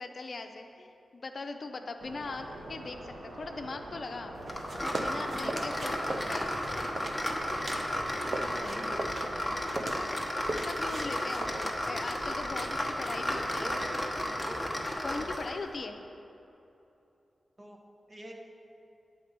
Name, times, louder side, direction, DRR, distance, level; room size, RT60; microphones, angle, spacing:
voice 1, 0.0-4.3 4.8-6.5 10.5-13.7 15.0-16.0, left 3 dB, 55° left, 5 dB, 0.5 m, -40 dB
sound 1, 2.0-9.9, right 1 dB, 85° right, 1.0 m, -45 dB
sound 2, 4.5-15.6, left 1 dB, 10° left, 1.0 m, -33 dB
sound 3, 4.5-8.0 8.3-12.7, right 2 dB, 55° right, 0.7 m, -39 dB
voice 2, 5.3-6.5 8.3-9.1 13.6-13.9 14.4-14.7 17.6-17.8 18.1-18.3, right 1 dB, 40° right, 0 dB, 1.2 m, -45 dB
8.2 x 4.3 x 6.7 m, 2.8 s
cardioid pair, 65°, 0 cm